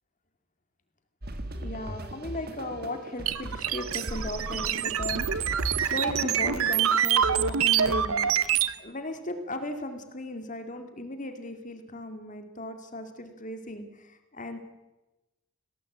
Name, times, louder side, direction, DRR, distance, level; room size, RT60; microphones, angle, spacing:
sound 1, 1.2-7.3, right 1 dB, 45° right, 2.1 m, -39 dB
voice 1, 1.6-8.5 8.8-14.6, left 1 dB, 35° left, 7 dB, 2.3 m, -37 dB
sound 2, 3.3-8.7, right 8 dB, 75° right, 1.0 m, -26 dB
20.0 x 17.5 x 8.1 m, 1.0 s
head